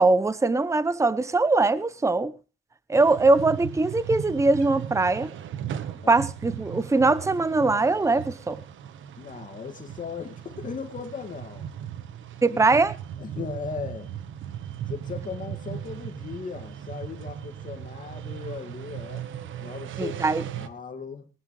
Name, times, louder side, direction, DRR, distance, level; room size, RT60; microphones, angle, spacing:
voice 1, 0.0-2.3 2.9-5.3 6.1-8.6 12.4-12.9 20.0-20.4, right 3 dB, 15° right, 0.9 m, -21 dB
sound 1, 2.9-20.7, right 10 dB, 80° right, 1.4 m, -37 dB
voice 2, 9.2-11.7 12.5-12.8 13.2-14.1 14.9-19.3 19.6-21.3, left 5 dB, 40° left, 2.2 m, -37 dB
20.0 x 11.5 x 3.3 m
cardioid pair, 90°, 20 cm